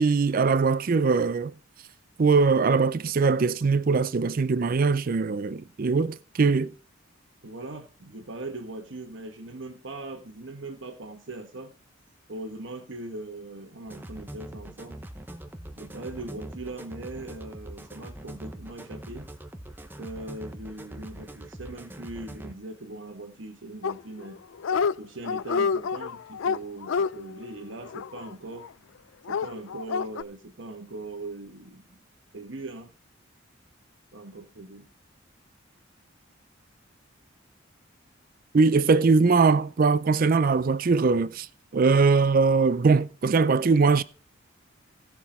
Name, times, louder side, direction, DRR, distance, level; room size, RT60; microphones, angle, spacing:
voice 1, 0.0-1.5 2.2-6.7 38.5-41.5 41.7-44.0, right 4 dB, 45° right, 0.4 m, -21 dB
voice 2, 7.4-11.7 12.3-15.0 15.8-19.3 20.0-24.4 25.0-28.7 29.3-31.8 32.3-32.9 34.1-34.9, right 2 dB, 65° right, 1.3 m, -40 dB
sound 1, 13.9-22.5, right 1 dB, 10° right, 0.8 m, -42 dB
Dog, 23.8-24.3 24.6-24.9 25.2-28.7 29.3-30.2, left 5 dB, 70° left, 0.4 m, -28 dB
16.0 x 6.0 x 4.3 m
head